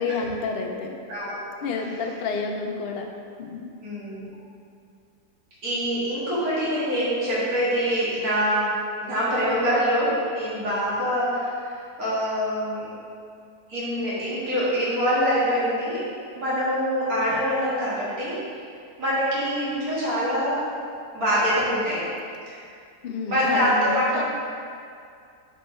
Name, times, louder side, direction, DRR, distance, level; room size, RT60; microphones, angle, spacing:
voice 1, 0.0-1.0 1.6-3.0 3.4-3.7 23.0-24.2, left 4 dB, 85° left, 2 dB, 0.5 m, -29 dB
voice 2, 3.8-4.3 5.6-12.9 13.7-16.0 16.4-18.4 19.0-20.7 21.1-22.1 22.5-22.6 23.3-24.2, equal, 65° right, -10 dB, 2.2 m, -24 dB
5.3 x 4.5 x 4.3 m, 2.4 s
omnidirectional pair, 1.7 m